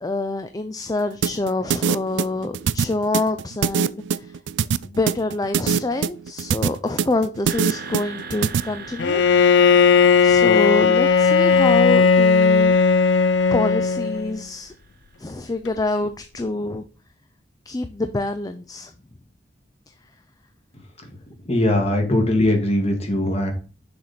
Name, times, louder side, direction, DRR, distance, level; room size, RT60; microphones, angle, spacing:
voice 1, 0.0-4.3 4.8-9.2 10.2-12.8 13.5-14.7 15.2-16.8 17.7-18.9, left 2 dB, 20° left, 0.4 m, -26 dB
sound 1, 1.2-8.6, right 7 dB, 90° right, 0.4 m, -22 dB
sound 2, 7.5-15.3, right 4 dB, 60° right, 1.1 m, -41 dB
Bowed string instrument, 9.0-14.4, left 5 dB, 90° left, 0.5 m, -16 dB
voice 2, 20.7-21.1 21.5-23.5, left 1 dB, 35° left, 2.0 m, -21 dB
6.6 x 4.2 x 5.9 m
head